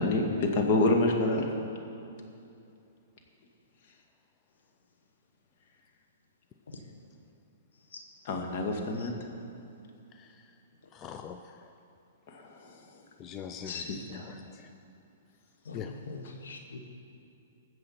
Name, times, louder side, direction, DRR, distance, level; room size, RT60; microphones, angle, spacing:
voice 1, 0.0-1.4 8.3-9.1 12.3-12.5 13.7-14.3, left 2 dB, 50° left, 2 dB, 1.9 m, -27 dB
voice 2, 10.1-10.4 10.9-11.7 13.2-14.7 15.7-15.9, left 8 dB, 25° left, 6 dB, 0.5 m, -43 dB
voice 3, 15.6-16.8, left 3 dB, 85° left, 3 dB, 1.6 m, -43 dB
20.5 x 7.6 x 4.4 m, 2.7 s
hypercardioid pair, 135°, 0 cm